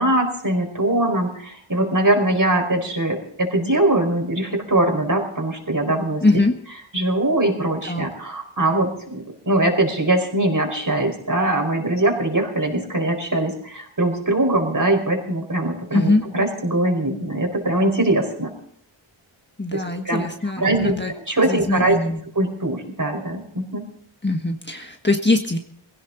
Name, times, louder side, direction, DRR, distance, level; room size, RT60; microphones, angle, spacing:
voice 1, 0.0-6.4 6.9-18.5 19.7-20.2 20.6-20.9 21.3-22.0 22.3-23.8, right 1 dB, 40° right, 3 dB, 4.9 m, -22 dB
voice 2, 6.2-6.5 7.8-8.1 15.9-16.2 19.6-21.1 21.4-22.2 24.2-25.6, left 2 dB, 20° left, 4 dB, 1.4 m, -21 dB
20.5 x 16.5 x 4.0 m, 0.64 s
wide cardioid pair, 60°, 48 cm